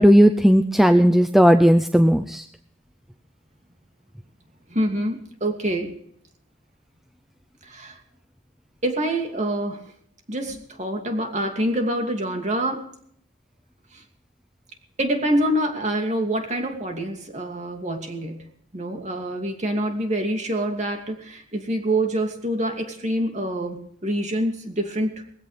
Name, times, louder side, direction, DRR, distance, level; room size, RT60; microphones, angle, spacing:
voice 1, 0.0-2.4, equal, ahead, 7 dB, 0.6 m, -15 dB
voice 2, 4.7-5.9 7.6-8.0 8.8-9.8 10.3-12.9 13.9-14.0 15.0-18.4 18.7-25.1, right 1 dB, 40° right, 4 dB, 2.6 m, -26 dB
20.5 x 16.0 x 3.4 m, 0.65 s
head